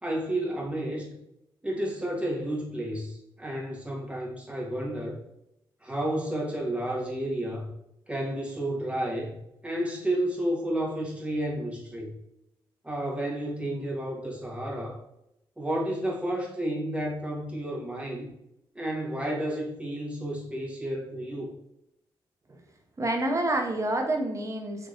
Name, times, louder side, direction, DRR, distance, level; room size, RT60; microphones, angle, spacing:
voice 1, 0.0-1.1 1.6-5.2 5.8-7.7 8.1-9.3 9.6-12.1 12.8-15.0 15.6-18.3 18.7-21.5, right 1 dB, 10° right, -2 dB, 1.3 m, -31 dB
voice 2, 23.0-24.9, right 1 dB, 30° right, 3 dB, 0.9 m, -28 dB
3.5 x 3.0 x 2.5 m, 0.81 s
supercardioid pair, 50°, 10 cm